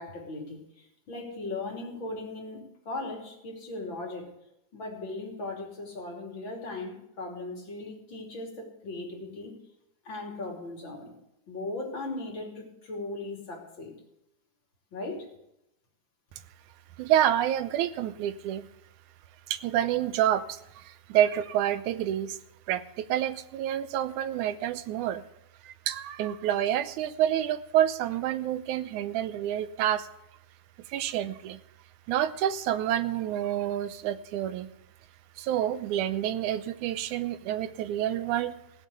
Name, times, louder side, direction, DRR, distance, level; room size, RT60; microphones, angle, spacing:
voice 1, 0.0-2.6 2.9-4.3 4.7-9.5 10.1-11.1 11.5-13.9 14.9-15.3, left 2 dB, 40° left, -1 dB, 3.5 m, -38 dB
voice 2, 17.0-18.7 19.5-22.4 22.7-25.2 25.6-30.1 30.9-31.6 32.1-34.7 35.4-38.5, right 11 dB, 80° right, 12 dB, 2.1 m, -28 dB
17.0 x 7.4 x 8.2 m, 0.83 s
omnidirectional pair, 3.5 m